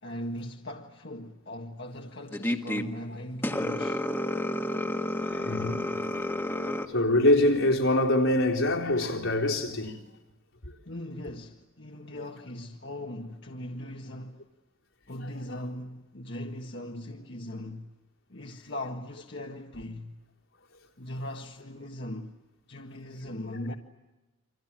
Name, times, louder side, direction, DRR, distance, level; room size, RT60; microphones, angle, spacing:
voice 1, 0.0-4.0 10.9-14.5 15.1-17.9 18.3-20.2 21.0-22.3 22.7-23.7, left 1 dB, 55° left, 1.8 m, -39 dB
sound 1, 2.3-2.8 3.4-6.9, left 1 dB, 10° left, 1.6 m, -30 dB
voice 2, 5.2-6.0 6.9-10.0 12.1-12.2 23.2-23.3, left 1 dB, 75° left, 4.2 m, -24 dB
29.5 x 26.5 x 7.6 m
head